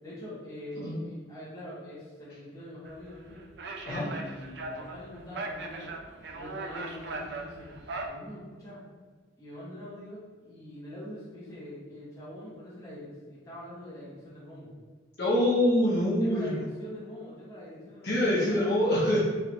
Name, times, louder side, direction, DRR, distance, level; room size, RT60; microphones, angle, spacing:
voice 1, 0.0-3.4 3.8-5.9 6.3-7.7 8.1-8.8 9.4-14.7 16.2-18.8, left 1 dB, 15° left, -10 dB, 1.4 m, -44 dB
sound 1, 2.9-8.1, right 2 dB, 60° right, 0.4 m, -39 dB
voice 2, 15.2-16.5 18.0-19.2, left 1 dB, 55° left, -7 dB, 1.0 m, -25 dB
4.9 x 3.0 x 2.9 m, 1.5 s
head